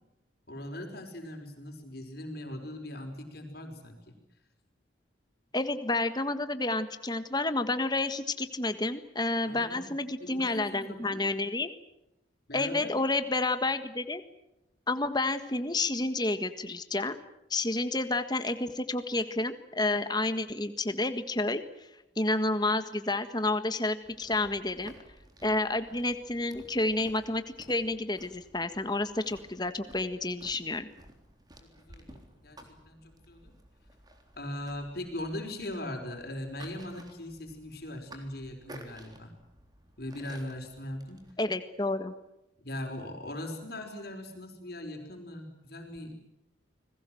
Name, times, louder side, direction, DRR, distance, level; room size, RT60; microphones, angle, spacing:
voice 1, 0.5-4.1 9.5-9.9 10.2-11.2 12.5-12.9 31.7-33.5 34.4-39.3 40.0-41.3 42.6-46.2, left 1 dB, 55° left, 3 dB, 5.1 m, -40 dB
voice 2, 5.5-11.7 12.5-14.2 14.9-17.2 17.5-21.9 22.1-24.9 25.4-30.9 41.4-42.1, left 2 dB, 20° left, 9 dB, 1.6 m, -30 dB
sound 1, 24.0-41.3, right 1 dB, 20° right, 3.7 m, -54 dB
29.5 x 20.5 x 7.9 m, 0.89 s
head